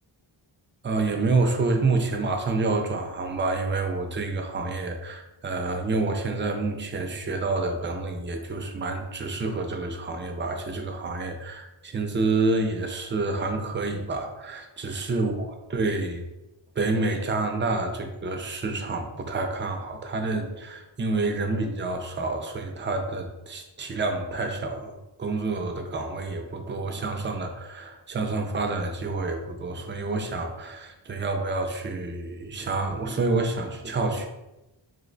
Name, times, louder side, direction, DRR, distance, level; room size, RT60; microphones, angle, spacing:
voice 1, 0.8-16.3 16.8-34.3, right 3 dB, 25° right, 5 dB, 0.4 m, -28 dB
2.7 x 2.1 x 3.9 m, 0.99 s
wide cardioid pair, 60°, 50 cm